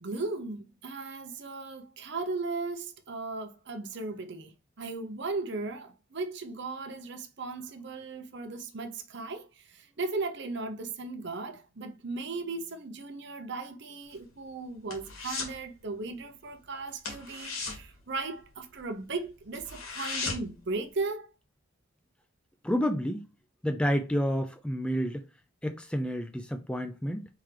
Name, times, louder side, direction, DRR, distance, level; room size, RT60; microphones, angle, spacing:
voice 1, 0.0-21.3, right 3 dB, 55° right, 0.7 m, -37 dB
sound 1, 14.0-15.6 15.9-16.2 16.5-16.6 17.0-18.8 19.2-19.3 19.5-20.6 21.0-21.1, left 4 dB, 85° left, 2.0 m, -37 dB
voice 2, 22.6-23.3 23.6-25.2 25.6-27.3, equal, 5° left, 0.3 m, -29 dB
4.4 x 3.6 x 3.3 m
head